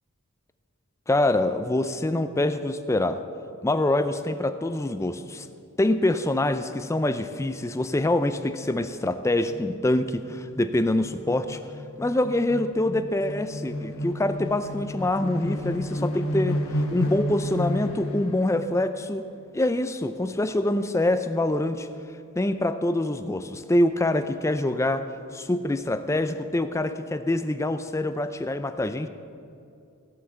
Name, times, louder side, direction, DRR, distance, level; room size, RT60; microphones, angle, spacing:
voice 1, 1.1-3.2 3.6-5.5 5.8-11.6 12.0-19.2 19.5-21.9 22.4-29.1, left 1 dB, 15° left, 10 dB, 0.4 m, -25 dB
sound 1, 9.5-18.5, left 1 dB, 70° left, 1.5 m, -32 dB
17.0 x 5.9 x 7.8 m, 2.5 s
head